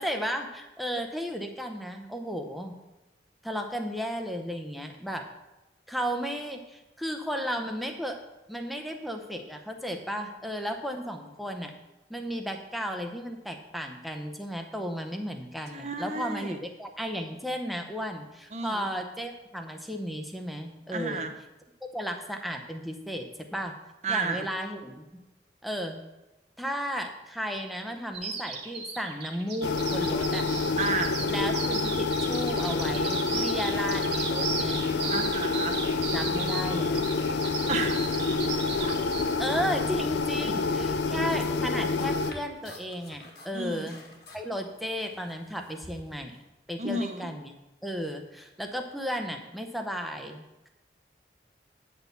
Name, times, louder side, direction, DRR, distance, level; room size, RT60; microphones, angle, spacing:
voice 1, 0.0-2.7 3.4-5.3 5.9-8.2 8.5-11.7 12.1-21.3 21.9-23.7 24.1-25.0 25.6-26.0 26.6-30.5 31.3-34.8 36.1-37.1 39.4-44.0 44.3-46.4 46.7-47.5 47.8-50.7, equal, ahead, 4 dB, 0.7 m, -34 dB
voice 2, 15.7-16.6 18.5-18.9 20.9-21.3 24.0-24.5 30.8-31.2 35.1-35.8 37.7-38.3 38.8-38.9 40.5-40.6 43.5-43.9 46.8-47.3, right 3 dB, 40° right, 5 dB, 0.8 m, -32 dB
Bird vocalization bird call bird song, 28.1-39.3, right 5 dB, 75° right, 1.4 m, -35 dB
sound 1, 29.6-42.3, left 4 dB, 75° left, 0.5 m, -28 dB
sound 2, 41.3-46.4, left 2 dB, 55° left, 1.8 m, -50 dB
9.4 x 4.3 x 6.8 m, 1.0 s
head